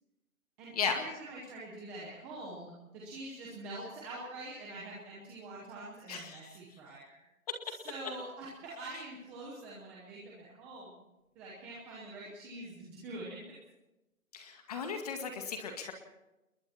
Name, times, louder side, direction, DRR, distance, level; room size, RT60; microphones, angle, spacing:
voice 1, 0.6-7.2 7.6-11.0 11.3-13.4, right 2 dB, 5° right, -5 dB, 0.8 m, -45 dB
voice 2, 6.1-6.4 14.3-15.9, left 6 dB, 25° left, 5 dB, 2.0 m, -35 dB
29.5 x 21.5 x 4.3 m, 0.99 s
hypercardioid pair, 160°, 43 cm